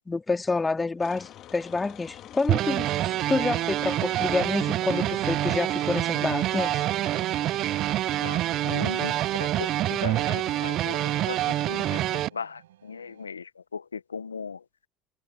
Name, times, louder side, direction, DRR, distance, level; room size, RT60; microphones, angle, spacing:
voice 1, 0.0-6.9, left 3 dB, 20° left, 2.6 m, -28 dB
sound 1, 1.0-12.3, left 12 dB, 50° left, 2.0 m, -46 dB
sound 2, 2.5-12.3, right 14 dB, 55° right, 0.4 m, -26 dB
sound 3, 3.0-13.3, right 13 dB, 80° right, 5.2 m, -57 dB
voice 2, 8.6-9.1 9.4-11.4 11.7-14.6, left 5 dB, 90° left, 0.9 m, -37 dB
hypercardioid pair, 70°, 0 cm